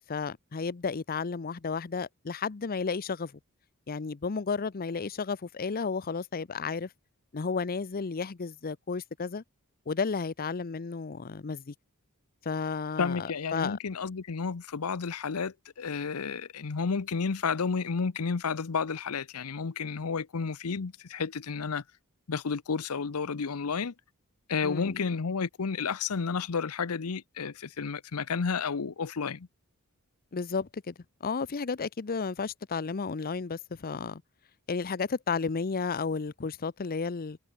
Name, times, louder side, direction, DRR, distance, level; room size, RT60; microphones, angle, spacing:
voice 1, 0.1-3.3 3.9-6.9 7.3-9.4 9.9-11.7 12.4-13.8 24.6-25.0 30.3-30.9 31.2-34.2 34.7-37.4, left 5 dB, 40° left, 0.6 m, -32 dB
voice 2, 13.0-21.8 22.3-23.9 24.5-29.5, left 5 dB, 80° left, 0.7 m, -31 dB
head